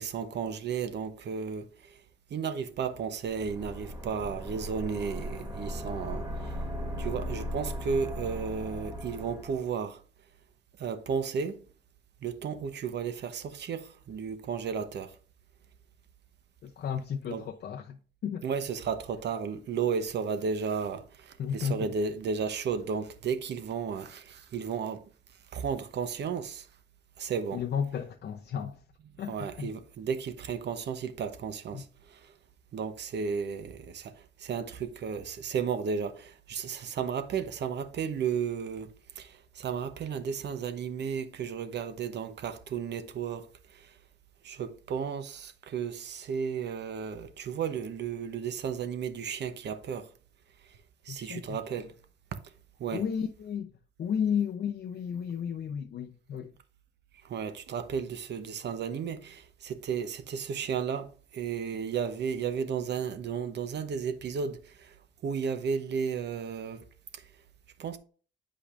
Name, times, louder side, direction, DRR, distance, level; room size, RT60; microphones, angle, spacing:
voice 1, 0.0-1.6 2.3-6.2 7.0-9.9 10.8-11.5 12.2-13.8 14.1-15.1 17.3-17.4 18.4-21.0 21.5-24.1 24.5-25.0 25.5-26.5 27.2-27.6 29.3-31.8 32.7-33.7 34.5-36.1 36.5-38.9 39.6-43.4 44.5-45.3 45.7-50.0 51.1-51.9 52.8-53.0 57.3-59.2 59.6-61.0 61.4-64.6 65.2-66.8 67.8-68.0, right 6 dB, 60° right, 0.9 m, -33 dB
sound 1, 3.3-9.7, equal, 20° right, 2.6 m, -37 dB
voice 2, 16.6-18.5 21.4-21.9 27.5-28.8 29.2-29.7 31.7-31.8 51.1-51.8 52.9-53.7 54.0-56.5, left 7 dB, 55° left, 0.6 m, -33 dB
8.4 x 5.1 x 2.5 m
cardioid pair, 90°, 20 cm